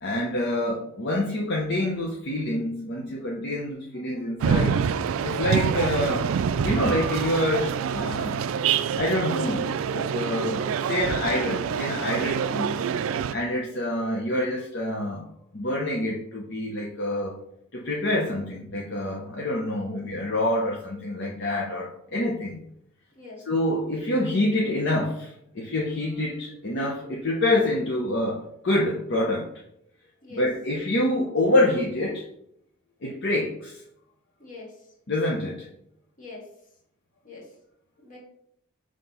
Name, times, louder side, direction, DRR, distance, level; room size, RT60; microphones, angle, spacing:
voice 1, 0.0-4.9 5.2-6.3 6.6-8.4 8.9-12.7 13.3-15.2 15.5-17.4 17.7-22.6 23.5-29.5 30.3-32.2 33.0-33.8 35.1-35.7, left 1 dB, 55° left, -2 dB, 0.9 m, -27 dB
sound 1, 4.4-13.3, right 7 dB, 70° right, 0.3 m, -26 dB
voice 2, 34.4-34.9 36.2-36.5 37.2-37.5 38.0-38.2, left 3 dB, 40° left, -3 dB, 2.1 m, -43 dB
6.0 x 3.3 x 5.4 m, 0.75 s
head